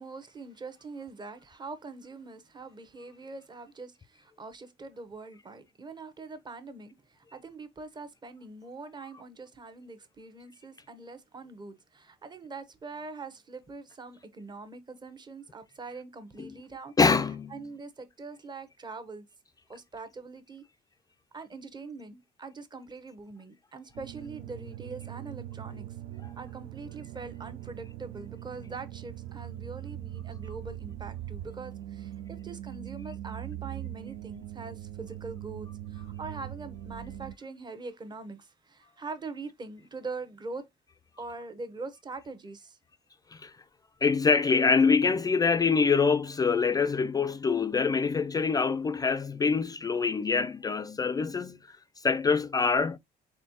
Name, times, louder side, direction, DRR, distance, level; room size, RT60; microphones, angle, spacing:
voice 1, 0.0-16.9 17.5-19.2 19.7-20.6 21.3-26.0 26.4-40.6 41.2-42.8, right 3 dB, 25° right, 1.0 m, -43 dB
voice 2, 17.0-17.5 43.3-43.5 44.0-51.7 52.0-53.0, left 5 dB, 20° left, 0.3 m, -25 dB
sound 1, 24.0-37.4, right 13 dB, 75° right, 0.5 m, -41 dB
4.3 x 3.5 x 2.8 m
cardioid pair, 110°, 17 cm